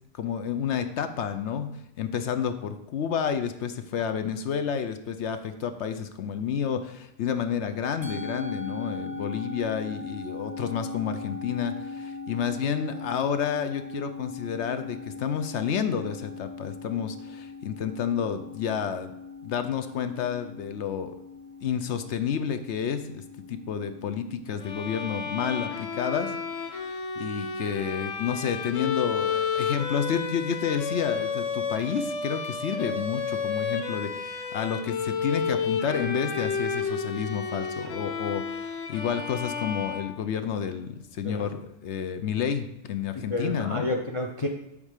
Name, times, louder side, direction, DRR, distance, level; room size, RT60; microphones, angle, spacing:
voice 1, 0.2-1.7 2.0-19.1 19.4-21.1 21.6-23.2 23.5-26.3 26.6-43.8, left 7 dB, 70° left, 9 dB, 0.9 m, -30 dB
Musical instrument, 8.0-26.5, left 4 dB, 15° left, 1.0 m, -40 dB
Bowed string instrument, 24.6-40.6, left 5 dB, 90° left, 1.2 m, -31 dB
voice 2, 43.2-44.5, left 2 dB, 35° left, 3 dB, 0.6 m, -30 dB
8.0 x 3.6 x 6.5 m, 0.86 s
omnidirectional pair, 1.3 m